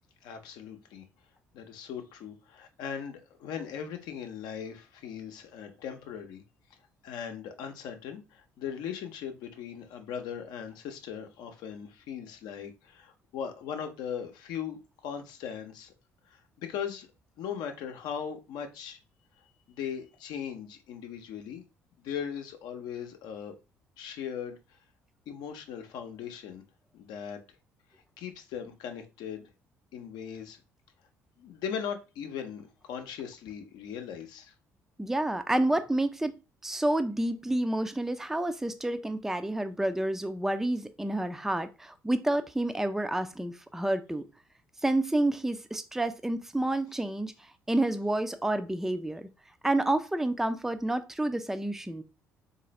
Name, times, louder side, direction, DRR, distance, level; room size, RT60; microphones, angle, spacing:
voice 1, 0.2-1.0 1.5-6.4 7.0-15.9 16.3-17.1 17.4-19.0 19.7-21.6 22.0-23.5 24.0-24.8 25.3-26.6 26.9-27.4 28.2-29.5 29.9-30.6 31.4-34.5, left 8 dB, 65° left, 0.7 m, -39 dB
voice 2, 35.0-36.3 36.6-44.2 44.8-47.3 47.7-49.3 49.6-52.0, right 1 dB, 5° right, 0.4 m, -29 dB
3.9 x 2.6 x 3.0 m
hypercardioid pair, 50°, 8 cm